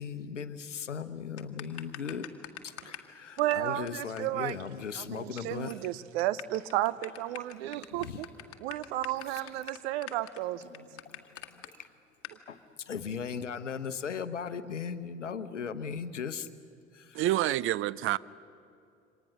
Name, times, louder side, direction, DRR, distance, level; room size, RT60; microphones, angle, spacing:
voice 1, 0.0-2.3 2.6-5.8 7.9-8.2 9.3-9.7 10.7-11.9 12.5-16.5 16.9-17.2, left 6 dB, 80° left, 1.0 m, -38 dB
sound 1, 1.4-3.1 3.4-3.5 3.9-4.0 4.2-4.3 4.5-4.6 4.8-5.4 5.7-5.9 6.2-11.7 12.2-12.4, left 12 dB, 40° left, 1.6 m, -44 dB
voice 2, 3.4-4.6 5.0-8.3 8.6-10.8, right 14 dB, 60° right, 0.9 m, -33 dB
voice 3, 17.1-18.2, right 14 dB, 35° right, 0.5 m, -27 dB
28.0 x 25.5 x 6.4 m
figure-of-eight pair, 60°, 36 cm